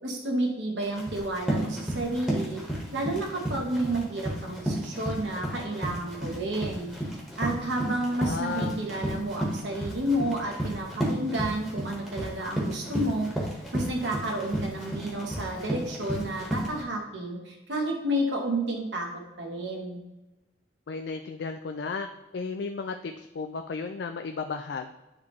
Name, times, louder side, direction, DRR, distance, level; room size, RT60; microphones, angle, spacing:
voice 1, 0.0-2.6 2.9-6.9 7.4-13.3 13.7-19.1 19.4-20.0, right 1 dB, 75° right, 1 dB, 1.1 m, -30 dB
Run, 0.8-16.8, right 1 dB, 5° right, 1.4 m, -33 dB
voice 2, 8.2-8.8 20.9-22.1 22.3-24.9, left 4 dB, 65° left, 5 dB, 0.4 m, -34 dB
9.7 x 3.6 x 3.1 m, 1.0 s
head